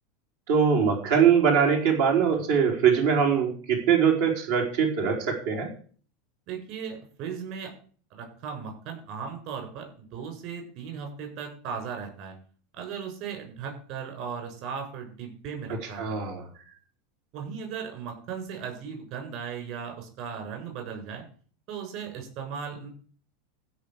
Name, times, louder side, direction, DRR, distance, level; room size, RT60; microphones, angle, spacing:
voice 1, 0.5-5.7 15.8-16.5, right 7 dB, 75° right, -1 dB, 4.4 m, -22 dB
voice 2, 6.5-7.7 8.1-12.3 12.7-16.2 17.3-21.2 21.7-22.9, right 6 dB, 60° right, 4 dB, 7.2 m, -37 dB
16.0 x 5.5 x 6.9 m, 0.44 s
hypercardioid pair, 100°, 0 cm